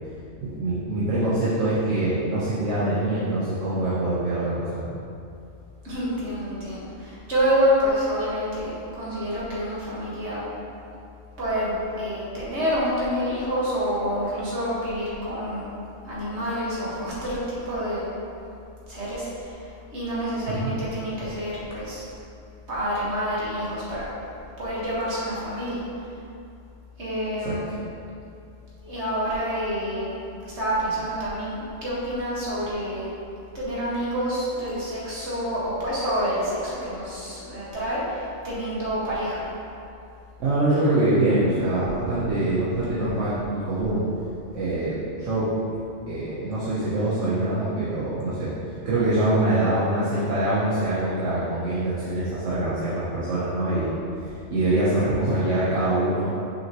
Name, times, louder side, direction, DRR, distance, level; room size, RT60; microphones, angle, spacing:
voice 1, 0.4-5.0 20.5-20.7 27.4-27.6 40.4-44.0 44.5-45.5 46.1-48.5 48.8-53.9 54.5-56.3, right 1 dB, 80° right, -10 dB, 1.3 m, -24 dB
voice 2, 5.8-10.5 11.4-15.7 16.0-18.0 18.9-22.0 22.7-24.0 24.6-25.8 27.0-27.7 28.8-30.2 30.5-33.1 33.5-39.4, equal, 60° right, -8 dB, 1.9 m, -27 dB
6.0 x 5.7 x 3.0 m, 2.6 s
omnidirectional pair, 1.3 m